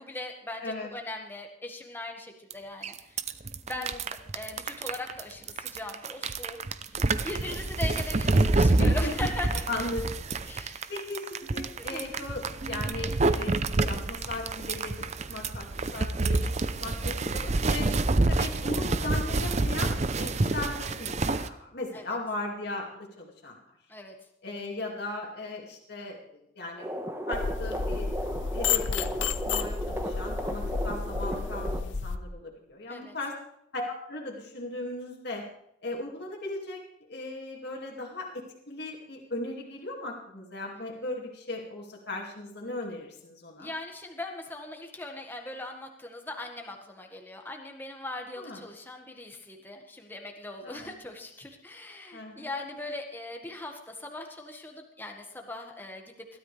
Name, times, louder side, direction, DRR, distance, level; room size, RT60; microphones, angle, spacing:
voice 1, 0.0-3.2 3.6-6.6 6.9-9.6 10.5-10.9 11.8-12.2 21.9-22.2 23.9-24.1 32.9-33.1 43.6-56.0, left 2 dB, 10° left, 2 dB, 1.7 m, -40 dB
sound 1, 2.5-2.6 2.8-21.5, right 2 dB, 35° right, 0.6 m, -27 dB
voice 2, 8.8-9.1 9.7-10.1 10.3-10.6 10.9-17.9 18.3-23.6 24.4-26.9 27.3-28.1 28.5-33.4 33.7-35.4 35.8-36.8 37.1-38.3 38.7-43.7 48.3-48.6 50.6-50.9 52.1-52.5, left 2 dB, 55° left, -1 dB, 2.4 m, -37 dB
sound 2, 26.8-31.8, equal, 15° right, 1.3 m, -35 dB
sound 3, 27.3-32.2, left 5 dB, 70° left, 0.7 m, -31 dB
21.0 x 13.0 x 3.4 m, 0.75 s
head